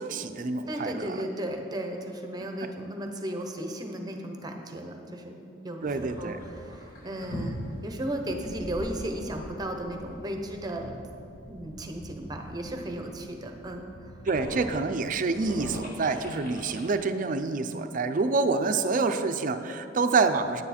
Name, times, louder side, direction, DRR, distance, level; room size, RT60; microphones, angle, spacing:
voice 1, 0.0-1.2 5.8-6.4 14.3-20.6, right 4 dB, 45° right, 8 dB, 0.5 m, -27 dB
voice 2, 0.7-11.0 11.5-14.2, right 1 dB, 20° right, 4 dB, 0.8 m, -35 dB
sound 1, 5.8-16.9, equal, 50° left, 1.0 m, -42 dB
9.5 x 9.5 x 4.3 m, 2.6 s
head